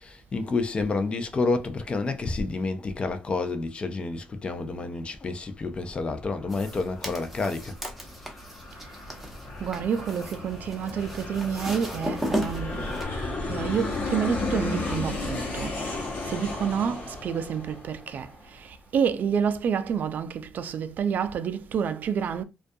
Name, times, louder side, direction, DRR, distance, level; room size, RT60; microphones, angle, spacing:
voice 1, 0.0-7.8, left 3 dB, 35° left, 0.4 m, -29 dB
Aircraft, 5.4-18.6, left 3 dB, 85° left, 0.8 m, -35 dB
sound 1, 6.5-13.0, right 1 dB, 5° right, 0.7 m, -35 dB
voice 2, 9.6-13.0 13.5-15.7 16.3-18.3 18.9-22.4, right 7 dB, 65° right, 0.3 m, -28 dB
2.3 x 2.2 x 2.6 m
cardioid pair, 100°, 3 cm